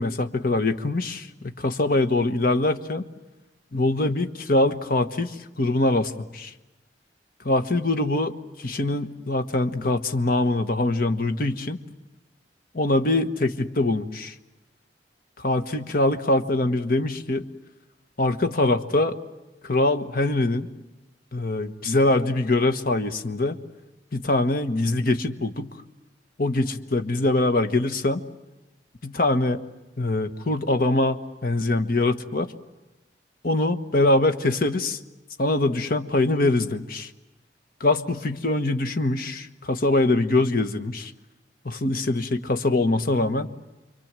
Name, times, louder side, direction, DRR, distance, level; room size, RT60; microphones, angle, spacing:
voice 1, 0.0-3.1 3.7-6.5 7.4-11.8 12.7-14.3 15.4-17.4 18.2-19.2 19.6-20.7 21.3-23.6 24.1-25.7 26.4-28.2 29.0-29.6 30.0-32.5 33.4-35.0 35.4-37.1 37.8-41.1 41.6-43.5, left 2 dB, 55° left, 8 dB, 1.3 m, -23 dB
29.5 x 23.5 x 7.6 m, 1.1 s
head